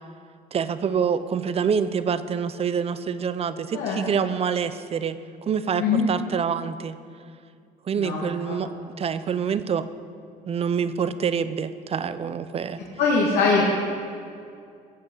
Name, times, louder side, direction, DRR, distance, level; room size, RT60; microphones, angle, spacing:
voice 1, 0.5-7.0 7.9-8.7 9.0-9.9 10.5-12.8, right 7 dB, 35° right, 13 dB, 0.6 m, -26 dB
voice 2, 3.7-4.3 5.8-6.1 8.0-8.6 13.0-13.7, left 4 dB, 75° left, -4 dB, 2.1 m, -23 dB
15.5 x 7.7 x 5.6 m, 2.4 s
cardioid pair, 110°, 17 cm